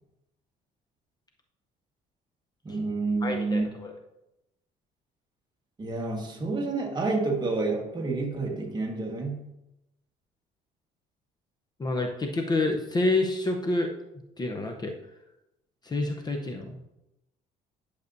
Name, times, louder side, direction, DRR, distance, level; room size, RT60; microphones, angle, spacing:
voice 1, 2.6-3.7 5.8-9.4, right 3 dB, 25° right, 1 dB, 1.6 m, -29 dB
voice 2, 3.2-3.9 11.8-13.9 14.4-14.9 15.8-16.9, left 2 dB, 25° left, 2 dB, 0.8 m, -28 dB
10.5 x 6.6 x 2.7 m, 0.89 s
cardioid pair, 110°, 17 cm